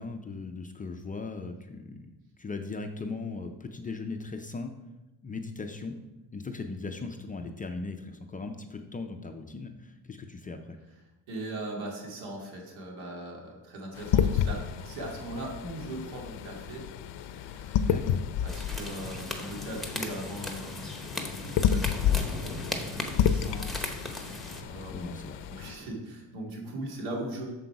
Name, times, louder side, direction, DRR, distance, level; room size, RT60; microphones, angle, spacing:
voice 1, 0.0-2.1 2.4-4.7 5.2-6.0 6.3-10.8 17.9-18.3 24.9-25.9, left 3 dB, 20° left, 5 dB, 0.3 m, -38 dB
voice 2, 11.3-16.9 17.2-17.9 18.4-20.9 21.3-22.6 22.8-25.1 25.5-27.5, right 1 dB, 90° right, -1 dB, 2.4 m, -40 dB
sound 1, 13.9-25.7, left 9 dB, 65° left, 0.6 m, -31 dB
sound 2, 18.5-24.6, left 1 dB, ahead, 0.7 m, -37 dB
7.9 x 6.9 x 4.7 m, 1.0 s
cardioid pair, 155°, 46 cm